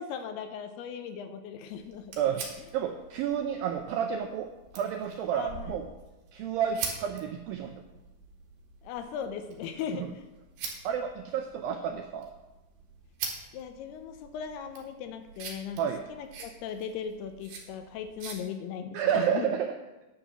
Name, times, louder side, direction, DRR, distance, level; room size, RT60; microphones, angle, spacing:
voice 1, 0.0-2.1 5.3-5.7 8.8-10.2 13.5-15.8 16.1-19.6, left 7 dB, 80° left, 7 dB, 2.6 m, -38 dB
sound 1, 1.7-18.4, right 5 dB, 65° right, 3.3 m, -44 dB
voice 2, 2.7-5.9 6.3-7.8 10.8-12.3 15.8-16.0 18.9-19.7, right 8 dB, 85° right, 5 dB, 2.0 m, -30 dB
10.0 x 5.6 x 7.0 m, 1.1 s
omnidirectional pair, 4.9 m